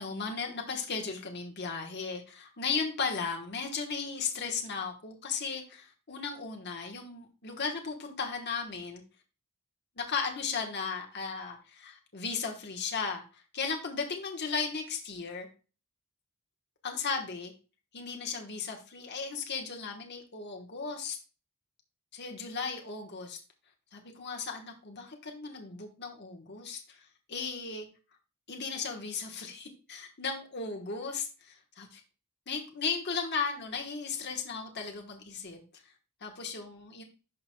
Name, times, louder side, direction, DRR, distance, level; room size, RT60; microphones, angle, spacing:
voice 1, 0.0-9.0 10.0-15.5 16.8-17.5 17.9-21.2 22.1-23.4 23.9-27.0 27.3-27.9 28.5-32.0 32.5-35.6 36.2-37.0, left 5 dB, 50° left, 1 dB, 1.2 m, -36 dB
11.5 x 5.2 x 2.2 m, 0.34 s
head